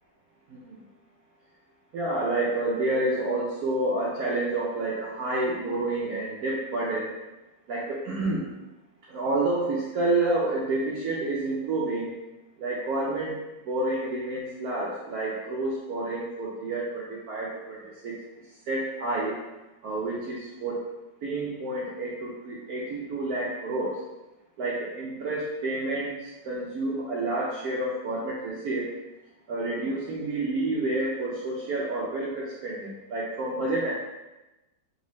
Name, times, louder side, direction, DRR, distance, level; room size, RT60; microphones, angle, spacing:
voice 1, 1.9-7.1 7.7-8.4 9.1-12.1 12.6-13.4 13.7-18.2 18.7-19.4 19.8-20.9 21.2-24.0 24.6-28.9 29.5-33.9, right 2 dB, 65° right, -5 dB, 1.0 m, -29 dB
3.8 x 3.3 x 3.1 m, 1.0 s
omnidirectional pair, 1.9 m